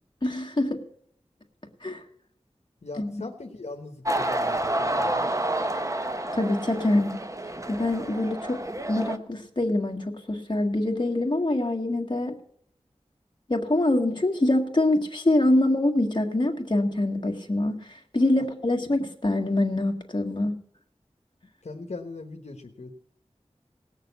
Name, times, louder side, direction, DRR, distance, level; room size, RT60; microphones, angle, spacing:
voice 1, 0.2-0.8 1.8-2.0 3.0-3.2 6.3-7.2 7.7-12.4 13.5-17.9 18.1-20.5, left 1 dB, 40° left, 3 dB, 1.8 m, -25 dB
voice 2, 2.8-5.3 18.4-18.5 21.6-22.9, left 3 dB, 75° left, 3 dB, 1.2 m, -40 dB
Ice hockey match announcement and crowd sounds, 4.0-9.2, right 1 dB, 25° right, 0.9 m, -29 dB
18.0 x 6.6 x 8.2 m, 0.67 s
wide cardioid pair, 60°, 12 cm